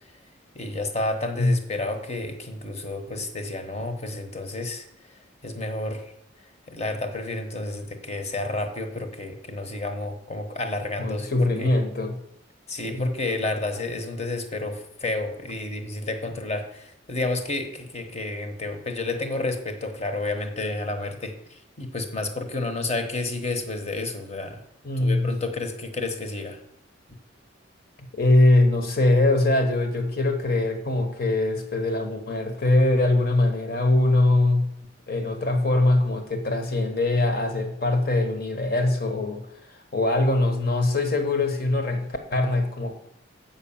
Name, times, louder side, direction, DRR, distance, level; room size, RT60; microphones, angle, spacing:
voice 1, 0.5-4.9 5.4-6.1 6.7-11.7 12.7-24.6 25.0-26.6, left 2 dB, 35° left, 6 dB, 1.1 m, -30 dB
voice 2, 11.0-12.2 12.8-13.1 24.8-25.4 28.1-34.7 35.1-39.4 39.7-42.9, left 2 dB, 50° left, 5 dB, 1.4 m, -22 dB
8.1 x 5.6 x 7.1 m, 0.75 s
head